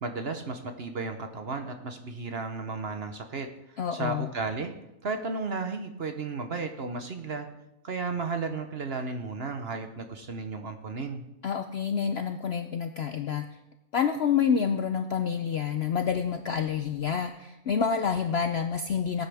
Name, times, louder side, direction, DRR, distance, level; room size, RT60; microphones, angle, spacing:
voice 1, 0.0-3.5 3.9-4.7 5.0-7.5 7.8-11.2, right 4 dB, 45° right, 6 dB, 1.0 m, -34 dB
voice 2, 3.8-4.3 11.4-13.4 13.9-19.3, left 7 dB, 60° left, 7 dB, 0.6 m, -28 dB
18.0 x 9.2 x 3.5 m, 0.90 s
omnidirectional pair, 1.6 m